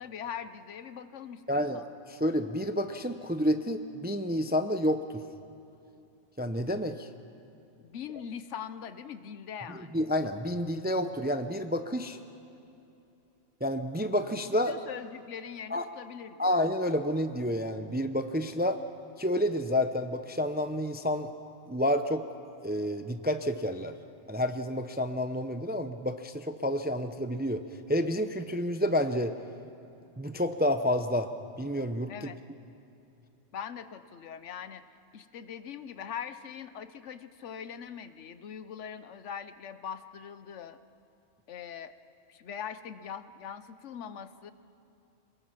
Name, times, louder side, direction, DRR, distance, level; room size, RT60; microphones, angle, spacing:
voice 1, 0.0-1.9 7.8-10.0 14.7-16.5 32.1-32.4 33.5-34.8 35.1-40.8 41.5-41.9 42.3-44.5, left 8 dB, 75° left, 12 dB, 1.1 m, -42 dB
voice 2, 1.5-1.8 2.1-5.2 6.4-7.1 9.9-12.2 13.6-14.7 15.7-15.8 16.4-18.8 19.2-21.3 21.7-22.2 22.6-24.0 24.3-27.6 27.9-29.3 30.2-31.3 31.6-32.1, equal, 10° right, 8 dB, 0.5 m, -29 dB
27.5 x 20.5 x 5.9 m, 2.8 s
omnidirectional pair, 1.3 m